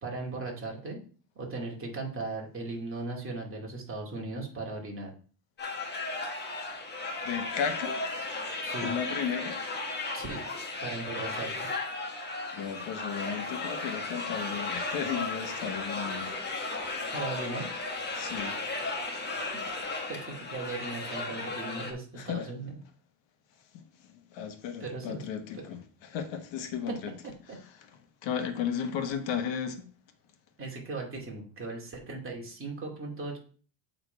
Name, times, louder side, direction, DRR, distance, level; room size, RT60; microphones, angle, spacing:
voice 1, 0.0-1.0 1.4-5.1 8.6-9.0 10.1-10.4 10.8-11.7 17.1-17.7 19.4-19.5 20.1-22.8 24.8-25.3 25.5-25.6 26.9-27.0 27.2-27.3 30.6-33.4, right 3 dB, 25° right, 2.4 m, -37 dB
sound 1, 5.6-21.9, left 3 dB, 20° left, 1.1 m, -35 dB
voice 2, 7.2-8.1 8.8-9.6 12.5-16.4 18.1-18.6 22.2-22.5 24.3-27.1 28.2-29.9, left 7 dB, 60° left, 1.4 m, -34 dB
8.1 x 3.9 x 4.6 m
cardioid pair, 135°, 50 cm